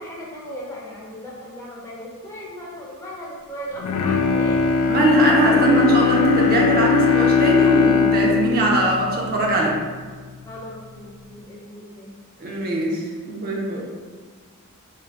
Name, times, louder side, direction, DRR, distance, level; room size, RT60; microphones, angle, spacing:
voice 1, 0.0-4.6 10.5-12.1, equal, 15° left, -5 dB, 0.5 m, -37 dB
Bowed string instrument, 3.8-10.0 10.4-10.5, left 6 dB, 85° left, 0.3 m, -20 dB
voice 2, 4.9-9.8 12.4-13.9, right 1 dB, 45° right, -2 dB, 0.5 m, -20 dB
2.7 x 2.5 x 3.3 m, 1.5 s
head